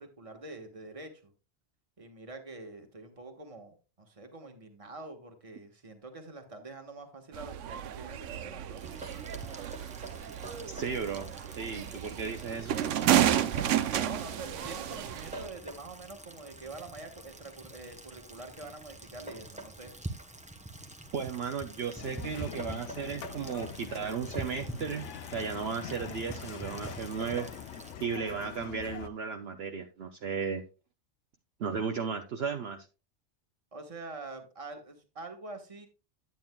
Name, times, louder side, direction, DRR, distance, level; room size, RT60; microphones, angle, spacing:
voice 1, 0.0-1.3 2.0-8.8 13.9-19.9 33.7-35.9, right 3 dB, 30° right, 5 dB, 1.3 m, -45 dB
sound 1, 7.3-15.5, right 11 dB, 90° right, 1.0 m, -31 dB
Rain, 8.8-28.0, right 1 dB, 10° right, 0.6 m, -45 dB
voice 2, 10.7-12.8 21.1-25.1 25.3-27.5 28.0-30.6 31.6-32.8, right 6 dB, 65° right, 5 dB, 0.9 m, -35 dB
sound 2, 22.0-29.1, left 9 dB, 85° left, 1.0 m, -44 dB
9.5 x 9.0 x 2.2 m, 0.32 s
omnidirectional pair, 1.2 m